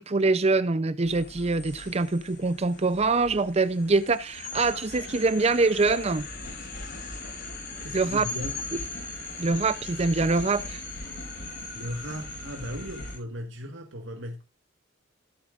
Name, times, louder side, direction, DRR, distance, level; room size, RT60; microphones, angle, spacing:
voice 1, 0.0-6.3 7.9-8.3 9.4-10.8, right 3 dB, 35° right, 0.5 m, -24 dB
sound 1, 1.0-13.2, left 2 dB, 60° left, 5.8 m, -39 dB
voice 2, 7.8-8.6 11.7-14.4, equal, 80° right, 1.5 m, -37 dB
15.5 x 8.8 x 2.4 m
head